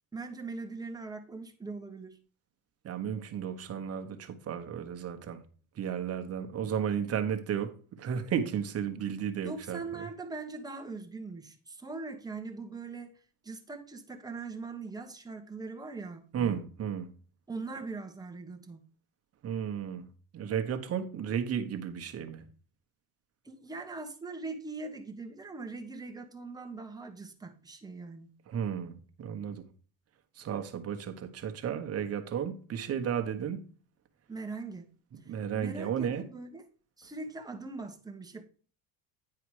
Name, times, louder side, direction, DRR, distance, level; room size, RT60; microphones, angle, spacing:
voice 1, 0.1-2.2 9.4-13.2 13.4-16.6 17.5-18.8 23.4-28.3 34.3-34.9 35.2-36.6 37.0-38.4, right 3 dB, 10° right, 1.1 m, -41 dB
voice 2, 2.8-5.4 5.7-10.1 16.3-17.1 19.4-20.1 20.3-22.5 28.5-29.7 30.4-33.6 35.1-36.2, right 8 dB, 35° right, 1.2 m, -33 dB
9.7 x 4.8 x 4.8 m
cardioid pair, 140°, 40 cm